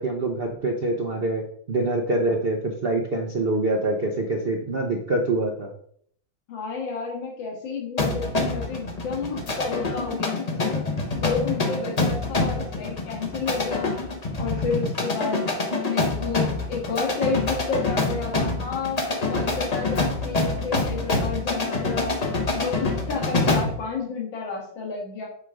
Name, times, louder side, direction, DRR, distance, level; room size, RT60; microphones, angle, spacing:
voice 1, 0.0-1.4 1.7-5.7, right 2 dB, 65° right, 3 dB, 0.5 m, -25 dB
voice 2, 6.5-10.8 11.2-13.9 14.4-15.5 15.9-19.0 19.3-22.2 22.5-25.3, left 4 dB, 70° left, -1 dB, 2.4 m, -31 dB
sound 1, 8.0-23.8, left 3 dB, 35° left, 0.6 m, -26 dB
7.9 x 4.8 x 3.8 m, 0.63 s
omnidirectional pair, 2.2 m